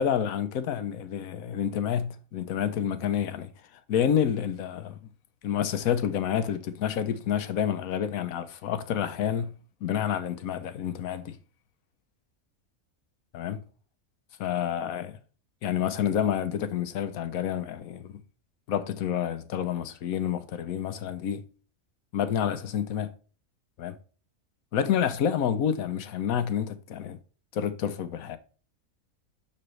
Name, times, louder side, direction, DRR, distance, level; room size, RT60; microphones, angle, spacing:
voice 1, 0.0-3.5 3.9-5.0 5.4-9.5 9.8-11.4 13.3-13.6 14.4-15.1 15.6-18.2 18.7-21.4 22.1-23.1 23.8-24.0 24.7-27.2 27.5-28.4, left 9 dB, 80° left, 1.2 m, -28 dB
6.9 x 6.5 x 3.2 m
omnidirectional pair, 1.5 m